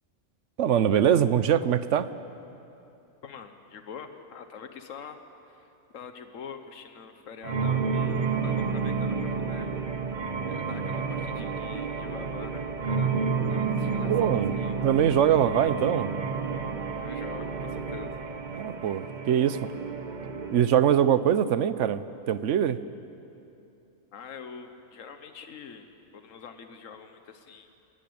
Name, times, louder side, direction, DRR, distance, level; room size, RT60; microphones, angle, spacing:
voice 1, 0.6-2.1 14.0-14.5 14.8-16.1 18.5-19.7 20.5-22.8, right 9 dB, 65° right, 14 dB, 1.0 m, -23 dB
voice 2, 3.2-5.2 5.5-5.6 5.9-9.7 10.5-14.8 17.0-18.2 24.1-25.9 26.1-27.7, left 6 dB, 75° left, 8 dB, 1.5 m, -44 dB
sound 1, 7.4-20.7, right 5 dB, 35° right, 1.1 m, -30 dB
28.5 x 14.0 x 8.7 m, 2.8 s
omnidirectional pair, 1.4 m